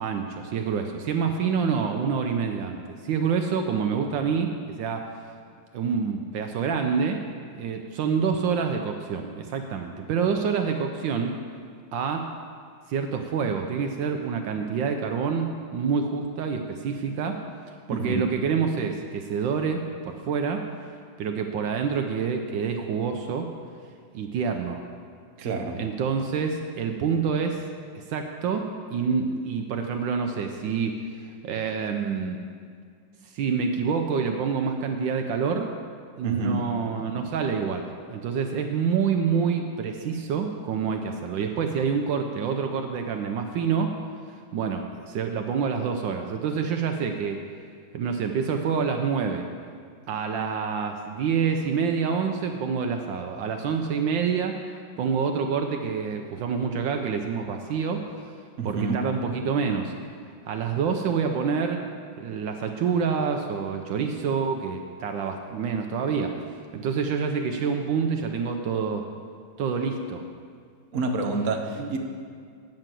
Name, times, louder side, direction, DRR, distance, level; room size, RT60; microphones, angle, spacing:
voice 1, 0.0-5.1 5.7-7.2 7.6-11.3 11.9-12.3 12.9-17.4 17.9-20.7 21.2-23.5 24.1-24.8 25.8-27.6 27.9-32.4 33.2-35.7 36.2-43.9 44.5-47.4 47.9-49.5 50.1-54.6 55.0-58.0 58.6-59.9 60.4-61.8 62.2-66.4 66.7-69.1 69.6-70.2 71.8-71.9, right 6 dB, 75° right, 4 dB, 1.3 m, -27 dB
voice 2, 17.9-18.3 25.4-25.8 36.2-36.7 58.6-59.1 70.9-72.0, right 3 dB, 50° right, 2 dB, 1.1 m, -28 dB
9.1 x 6.5 x 7.4 m, 2.1 s
omnidirectional pair, 2.2 m